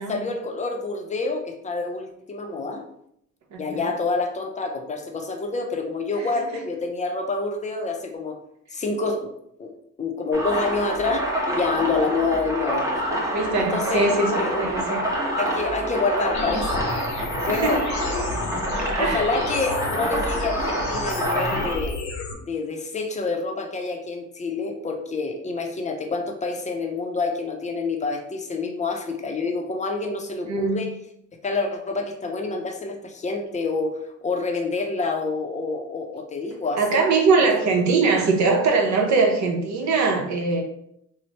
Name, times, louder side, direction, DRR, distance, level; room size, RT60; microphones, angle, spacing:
voice 1, 0.0-2.8 3.6-8.4 8.7-9.3 9.6-9.7 10.0-13.1 13.6-14.1 14.4-14.6 15.3-16.9 17.4-17.9 19.0-22.0 22.4-30.9 31.4-37.0, left 3 dB, 25° left, 3 dB, 0.5 m, -27 dB
voice 2, 3.5-3.8 13.3-14.3 14.6-15.0 17.5-17.8 18.6-19.3 30.5-30.9 36.8-40.6, right 4 dB, 65° right, 2 dB, 0.7 m, -22 dB
sound 1, 10.3-21.8, equal, 10° right, 0.7 m, -27 dB
sound 2, 16.3-22.3, left 3 dB, 70° left, 0.6 m, -31 dB
3.1 x 2.0 x 2.8 m, 0.74 s
cardioid pair, 90°, 30 cm